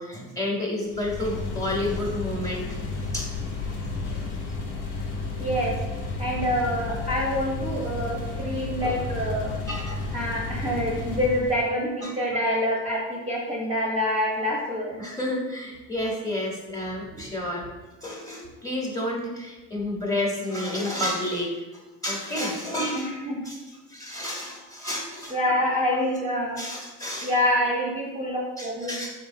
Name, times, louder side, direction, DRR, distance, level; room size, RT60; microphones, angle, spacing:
voice 1, 0.0-2.8 3.1-3.3 8.8-8.9 9.7-10.1 12.0-12.2 15.0-17.6 18.0-21.5 22.0-23.1 23.4-23.6 23.9-25.5 26.3-27.5 28.6-29.1, left 1 dB, 10° left, -2 dB, 1.0 m, -30 dB
sound 1, 0.9-11.7, left 3 dB, 70° left, 0.9 m, -32 dB
voice 2, 5.4-5.8 6.2-9.5 10.1-15.0 17.1-17.2 22.9-23.5 25.3-26.6 27.2-29.0, equal, 20° right, -4 dB, 0.7 m, -26 dB
4.3 x 3.2 x 2.6 m, 1.2 s
supercardioid pair, 95°, 38 cm